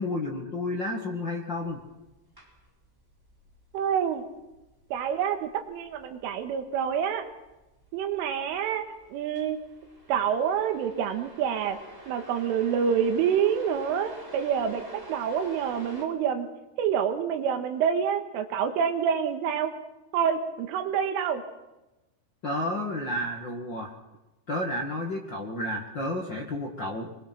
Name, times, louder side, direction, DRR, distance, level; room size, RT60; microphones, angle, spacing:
voice 1, 0.0-1.8 22.4-23.9 24.5-27.2, left 1 dB, 85° left, 0 dB, 1.0 m, -31 dB
sound 1, 1.5-16.1, right 1 dB, 5° right, 3.3 m, -48 dB
voice 2, 3.7-4.3 4.9-7.3 7.9-8.9 9.1-9.6 10.1-11.8 12.1-14.8 15.1-16.5 16.8-19.7 20.1-21.4, right 8 dB, 75° right, 7 dB, 4.1 m, -27 dB
24.5 x 22.5 x 6.0 m, 1.0 s
omnidirectional pair, 5.8 m